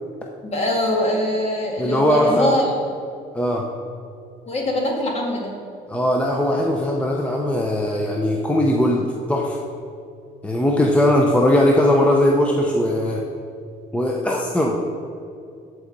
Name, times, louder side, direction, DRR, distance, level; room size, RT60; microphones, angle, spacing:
voice 1, 0.4-2.7 4.5-5.5, left 1 dB, 40° left, -1 dB, 2.0 m, -22 dB
voice 2, 1.8-2.5 3.3-3.7 5.9-9.6 10.4-13.2 13.9-14.8, left 1 dB, 5° left, -1 dB, 0.7 m, -19 dB
13.5 x 4.8 x 4.0 m, 2.5 s
cardioid pair, 110°, 17 cm